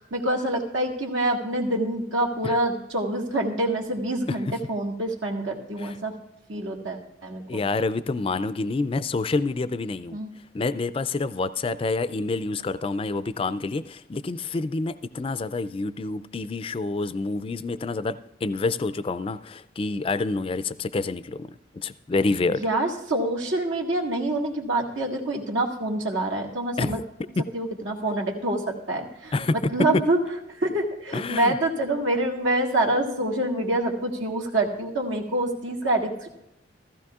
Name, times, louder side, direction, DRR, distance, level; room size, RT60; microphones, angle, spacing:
voice 1, 0.0-6.1 6.5-7.4 10.1-10.3 22.6-27.0 27.5-29.3 29.7-30.3 30.6-36.1, right 1 dB, 80° right, 1.8 m, -26 dB
voice 2, 7.5-10.2 10.5-21.5 21.8-22.6 26.8-27.0 29.3-29.7 31.1-31.6, left 3 dB, 30° left, 0.3 m, -28 dB
15.0 x 15.0 x 2.4 m
head